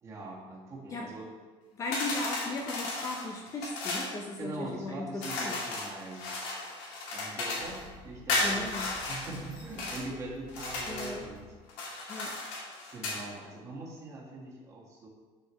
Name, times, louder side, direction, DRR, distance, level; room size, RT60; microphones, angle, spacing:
voice 1, 0.0-1.3 4.4-6.3 7.1-8.7 9.0-11.5 12.9-15.1, right 2 dB, 25° right, -3 dB, 1.6 m, -42 dB
voice 2, 1.8-5.6 8.4-8.9 10.9-11.3 12.1-12.3, left 2 dB, 25° left, 1 dB, 0.6 m, -37 dB
sound 1, 1.9-4.1 5.2-7.8 8.3-10.0 10.5-11.2 11.7-13.2, left 2 dB, 85° left, 2.6 m, -34 dB
sound 2, 7.6-11.6, right 1 dB, 85° right, 1.3 m, -53 dB
11.5 x 6.2 x 3.1 m, 1.5 s
cardioid pair, 180°, 13 cm